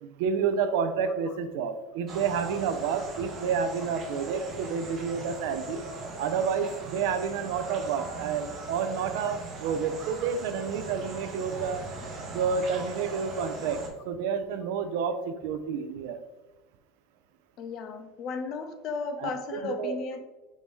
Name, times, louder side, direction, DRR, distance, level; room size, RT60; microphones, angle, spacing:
voice 1, 0.0-5.8 6.2-11.9 12.3-16.2 19.2-19.3 19.6-20.0, right 6 dB, 65° right, 9 dB, 0.4 m, -29 dB
sound 1, 2.1-13.9, right 3 dB, 30° right, 0.7 m, -40 dB
voice 2, 17.6-20.2, left 4 dB, 40° left, 8 dB, 0.4 m, -34 dB
4.5 x 2.6 x 3.6 m, 1.1 s
supercardioid pair, 160°, 0 cm